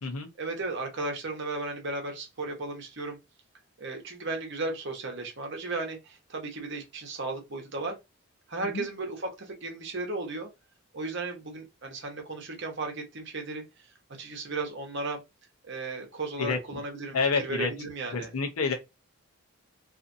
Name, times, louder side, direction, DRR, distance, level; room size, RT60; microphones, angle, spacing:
voice 1, 0.4-3.2 3.8-8.0 8.5-10.5 10.9-13.6 14.2-15.2 15.6-18.3, right 2 dB, 55° right, 0.9 m, -35 dB
voice 2, 17.1-17.7 18.1-18.7, left 4 dB, 80° left, 0.6 m, -28 dB
2.5 x 2.4 x 2.5 m
head